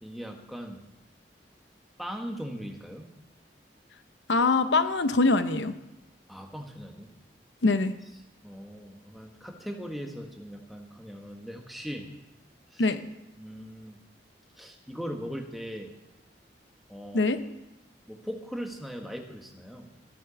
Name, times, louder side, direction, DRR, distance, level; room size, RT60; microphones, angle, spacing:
voice 1, 0.0-0.8 2.0-3.1 6.3-7.1 8.4-12.1 12.7-12.8 13.4-14.0 14.6-15.9 16.9-17.3 18.1-19.8, equal, ahead, 2 dB, 1.5 m, -39 dB
voice 2, 4.3-5.7 7.6-7.9 12.8-13.0 17.1-17.4, left 3 dB, 90° left, 10 dB, 0.8 m, -23 dB
14.0 x 9.2 x 7.0 m, 0.96 s
head